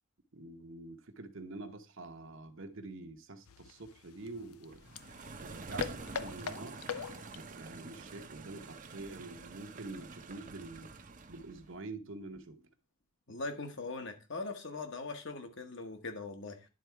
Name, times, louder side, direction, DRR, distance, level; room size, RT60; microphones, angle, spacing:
voice 1, 0.3-4.8 5.4-6.9 7.4-10.9 11.3-12.7, right 2 dB, 60° right, 1.0 m, -46 dB
sound 1, 3.5-7.5, left 7 dB, 80° left, 0.6 m, -43 dB
sound 2, 4.7-11.7, right 3 dB, 35° right, 0.7 m, -47 dB
voice 2, 13.3-16.7, left 3 dB, 55° left, 1.3 m, -41 dB
10.5 x 4.1 x 4.6 m
head